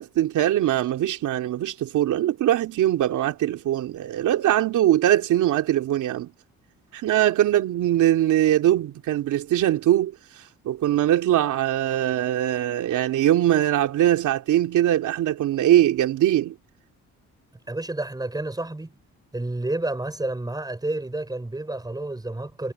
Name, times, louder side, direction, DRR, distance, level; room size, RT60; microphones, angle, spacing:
voice 1, 0.0-6.3 6.9-10.1 10.6-16.5, right 12 dB, 80° right, 3.1 m, -21 dB
voice 2, 17.7-19.0 19.3-22.7, right 2 dB, 15° right, 5.5 m, -30 dB
cardioid pair, 90°, 30 cm